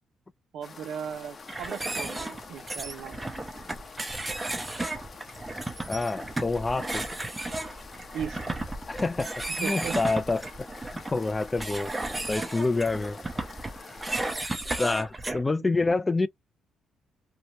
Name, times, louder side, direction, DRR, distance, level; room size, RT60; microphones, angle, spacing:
voice 1, 0.5-3.2 8.1-8.5 9.5-10.0, right 8 dB, 85° right, 0.5 m, -37 dB
sound 1, 0.6-14.3, left 4 dB, 40° left, 0.7 m, -47 dB
sound 2, 1.5-15.4, right 2 dB, 15° right, 0.7 m, -34 dB
voice 2, 5.9-7.0 8.9-10.7 10.9-11.9 12.3-13.2 14.8-16.3, left 3 dB, 20° left, 0.3 m, -27 dB
2.7 x 2.1 x 2.9 m
cardioid pair, 90°, 0 cm